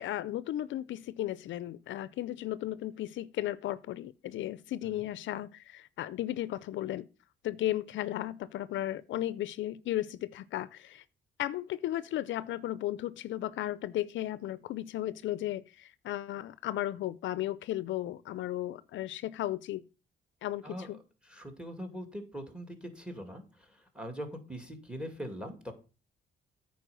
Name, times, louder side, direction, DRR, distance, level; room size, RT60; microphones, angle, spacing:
voice 1, 0.0-7.1 7.4-11.0 11.4-19.8 20.4-21.0, left 13 dB, 75° left, 0.5 m, -35 dB
voice 2, 21.2-25.7, equal, 5° right, 2.3 m, -42 dB
9.2 x 4.5 x 6.8 m
cardioid pair, 90°, 20 cm